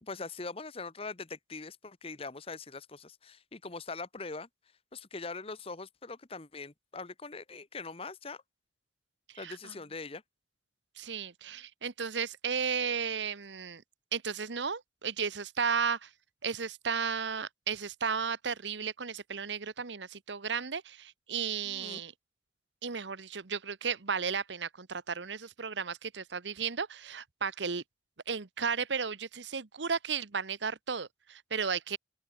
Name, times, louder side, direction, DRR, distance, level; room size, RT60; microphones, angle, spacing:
voice 1, 0.0-4.5 4.9-8.4 9.4-10.2 21.6-22.0, left 3 dB, 30° left, 1.0 m, -42 dB
voice 2, 9.3-9.7 11.0-13.8 14.1-16.1 16.4-22.1 22.8-27.8 28.3-32.0, right 6 dB, 80° right, 1.1 m, -34 dB
open air
head